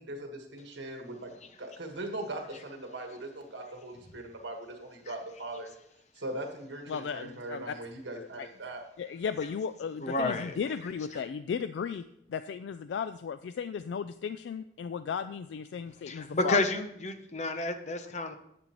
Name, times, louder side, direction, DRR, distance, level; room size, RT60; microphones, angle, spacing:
voice 1, 0.0-5.7 6.1-8.8, right 1 dB, 85° right, 4 dB, 1.5 m, -40 dB
voice 2, 6.9-7.7 8.1-8.5 9.0-12.0 12.3-16.6, left 6 dB, 75° left, 12 dB, 0.3 m, -35 dB
voice 3, 10.0-10.6 16.0-18.4, left 2 dB, 40° left, 8 dB, 0.7 m, -30 dB
11.0 x 7.8 x 3.0 m, 0.77 s
head